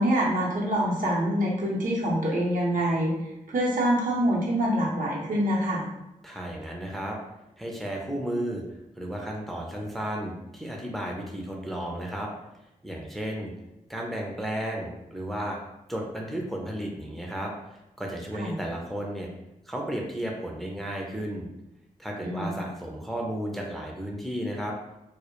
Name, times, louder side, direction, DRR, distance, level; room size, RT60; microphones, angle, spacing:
voice 1, 0.0-3.1 3.5-5.8 18.3-18.6 22.2-22.5, equal, 70° right, -4 dB, 0.7 m, -25 dB
voice 2, 6.2-7.2 7.6-8.6 9.0-12.3 12.8-13.5 13.9-15.6 15.9-19.3 19.7-21.5 22.0-24.7, right 1 dB, ahead, -1 dB, 0.5 m, -33 dB
2.1 x 2.0 x 2.9 m, 0.90 s
cardioid pair, 65°, 14 cm